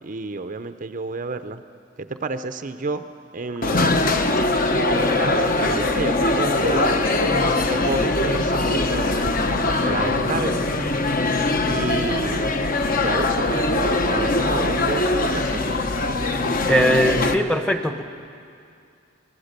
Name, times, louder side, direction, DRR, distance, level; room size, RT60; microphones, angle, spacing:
voice 1, 0.0-1.6 2.2-3.0 3.3-4.3 4.9-7.1 7.5-9.1 9.8-10.7 11.7-12.4 13.0-15.6, right 3 dB, 40° right, 9 dB, 0.6 m, -30 dB
sound 1, 3.6-17.3, left 2 dB, 45° left, 1.1 m, -21 dB
voice 2, 16.7-18.0, equal, 5° left, 7 dB, 1.0 m, -20 dB
25.0 x 19.0 x 6.7 m, 2.4 s
head